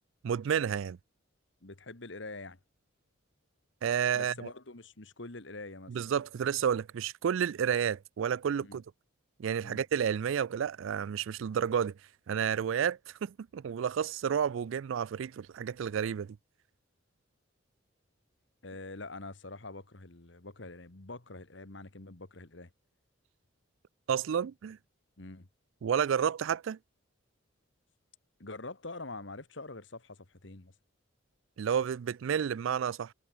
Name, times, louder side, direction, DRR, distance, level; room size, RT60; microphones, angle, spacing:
voice 1, 0.2-1.0 3.8-4.5 5.9-8.8 9.4-11.9 12.3-16.4 24.1-24.8 25.8-26.8 31.6-33.1, right 8 dB, 70° right, 0.3 m, -31 dB
voice 2, 1.6-2.6 4.1-5.9 8.6-8.8 9.6-9.8 18.6-22.7 25.2-25.5 28.4-30.7, left 2 dB, 60° left, 1.8 m, -45 dB
head